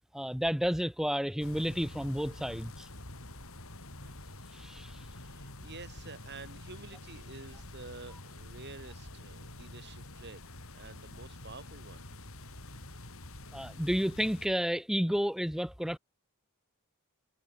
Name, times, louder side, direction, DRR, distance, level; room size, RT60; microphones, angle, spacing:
voice 1, 0.1-2.9 4.5-5.0 13.5-16.0, equal, ahead, 1.2 m, -31 dB
sound 1, 1.4-14.5, left 2 dB, 65° left, 5.1 m, -47 dB
voice 2, 5.0-10.4 10.7-12.0, right 3 dB, 50° right, 4.5 m, -49 dB
head